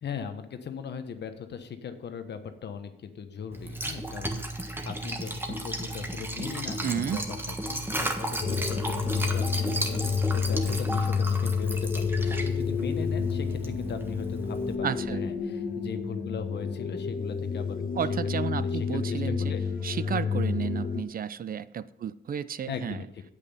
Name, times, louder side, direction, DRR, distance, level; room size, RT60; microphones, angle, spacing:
voice 1, 0.0-17.8 18.5-19.6 22.7-23.2, left 7 dB, 65° left, 8 dB, 1.2 m, -39 dB
Liquid, 3.5-14.8, right 1 dB, 10° right, 1.4 m, -34 dB
voice 2, 6.8-7.2 14.8-15.3 18.0-19.4 19.8-23.0, right 8 dB, 50° right, 16 dB, 0.5 m, -32 dB
sound 1, 8.4-21.0, left 5 dB, 50° left, 1.3 m, -29 dB
8.9 x 8.3 x 5.6 m, 0.80 s
cardioid pair, 95°, 19 cm